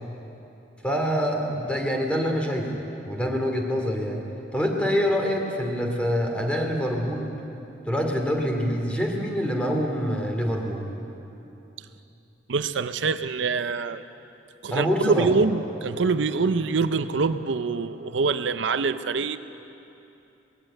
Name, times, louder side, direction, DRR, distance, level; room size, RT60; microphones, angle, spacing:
voice 1, 0.8-2.7 3.0-4.2 4.5-7.3 7.8-10.8 14.7-15.3, equal, 5° left, 1 dB, 2.6 m, -25 dB
voice 2, 12.5-14.0 14.6-19.4, right 4 dB, 80° right, 11 dB, 0.6 m, -25 dB
20.5 x 16.0 x 8.9 m, 2.9 s
head